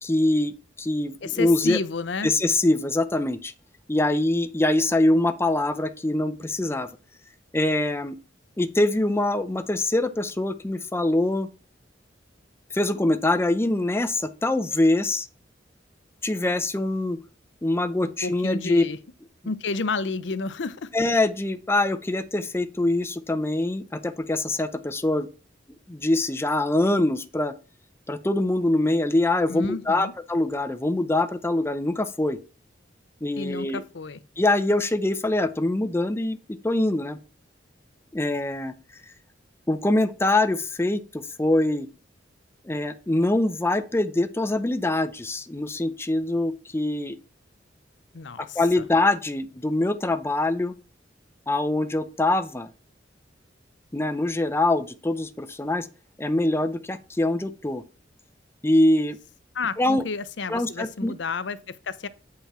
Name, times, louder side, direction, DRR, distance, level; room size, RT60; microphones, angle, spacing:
voice 1, 0.0-1.8 2.2-3.5 3.9-6.9 7.5-8.2 8.6-11.5 12.7-15.3 16.2-17.2 17.6-18.8 20.9-25.3 25.9-27.5 28.1-32.4 33.2-33.8 34.4-36.4 36.6-37.2 38.1-38.7 39.7-41.9 42.7-47.2 48.4-50.7 51.5-52.7 53.9-55.9 56.2-57.8 58.6-59.2 59.8-60.0 60.5-61.1, left 2 dB, 15° left, 0.5 m, -24 dB
voice 2, 1.2-2.3 18.2-19.0 19.5-20.9 29.5-30.1 33.4-34.2 48.1-48.8 59.5-62.1, left 4 dB, 75° left, 0.7 m, -31 dB
8.6 x 5.8 x 4.3 m
head